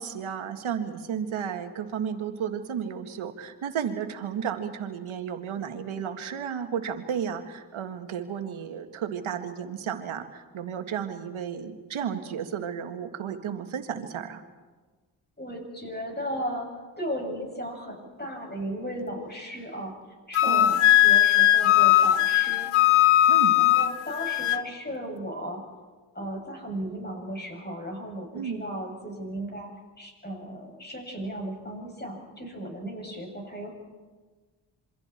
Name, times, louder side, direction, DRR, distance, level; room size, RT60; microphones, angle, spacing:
voice 1, 0.0-14.4 20.4-20.8 23.3-23.6 28.3-28.6, right 8 dB, 75° right, 7 dB, 1.9 m, -33 dB
voice 2, 15.4-19.9 20.3-22.7 23.5-25.6 26.1-33.7, equal, 20° left, 2 dB, 7.3 m, -36 dB
Wind instrument woodwind instrument, 20.3-24.6, left 13 dB, 80° left, 0.9 m, -19 dB
27.0 x 24.5 x 4.5 m, 1.3 s
supercardioid pair, 40°, 49 cm